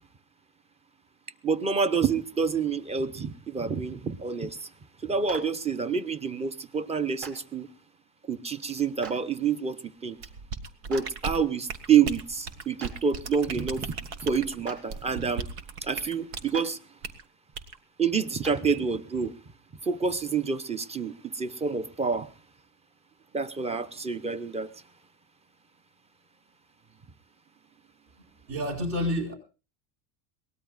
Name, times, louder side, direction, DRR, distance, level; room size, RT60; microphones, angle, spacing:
voice 1, 1.4-4.7 5.0-7.7 8.3-10.2 10.9-15.5 15.8-16.8 18.0-19.3 19.8-22.3 23.3-24.7, right 6 dB, 15° right, 0.7 m, -28 dB
Clapping, 5.3-5.4 7.2-7.3 9.0-9.1 10.9-11.0 12.8-12.9 14.6-14.7 16.5-16.6 18.4-18.5, right 6 dB, 40° right, 4.2 m, -39 dB
sound 1, 10.2-16.5 17.0-17.2 17.6-17.8, right 5 dB, 85° right, 1.8 m, -37 dB
voice 2, 28.5-29.4, left 1 dB, 60° right, 4.8 m, -28 dB
22.5 x 19.0 x 2.5 m
cardioid pair, 130°, 46 cm